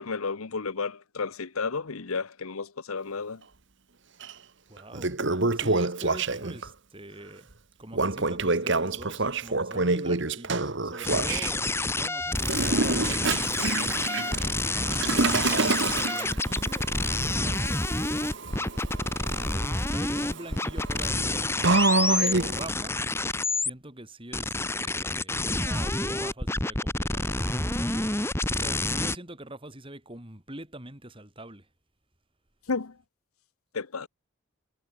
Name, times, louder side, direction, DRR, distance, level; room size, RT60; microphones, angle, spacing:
voice 1, 0.0-3.4 32.7-32.9 33.7-34.1, left 4 dB, 80° left, 1.0 m, -32 dB
Toilet flush, 4.2-4.3 4.8-6.7 7.9-11.5 12.4-22.7, right 3 dB, 55° right, 1.6 m, -28 dB
voice 2, 4.7-7.5 7.8-18.7 19.2-21.6 22.2-31.7, right 1 dB, 25° right, 3.2 m, -44 dB
sound 1, 11.0-23.7 24.3-29.2, left 2 dB, 10° left, 2.0 m, -28 dB
head